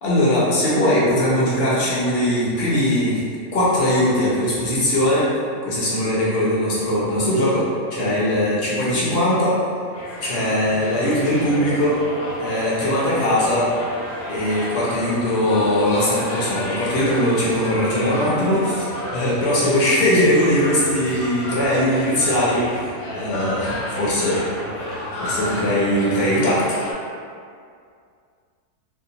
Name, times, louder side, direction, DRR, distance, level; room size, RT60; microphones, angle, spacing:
voice 1, 0.0-3.2 3.5-5.3 5.6-7.6 7.9-9.6 10.2-12.0 12.4-13.7 14.3-18.6 19.1-24.5 25.2-26.8, left 1 dB, 55° left, -7 dB, 0.8 m, -20 dB
sound 1, 9.9-26.9, left 1 dB, 90° left, 1.2 m, -31 dB
2.7 x 2.1 x 2.7 m, 2.2 s
omnidirectional pair, 1.5 m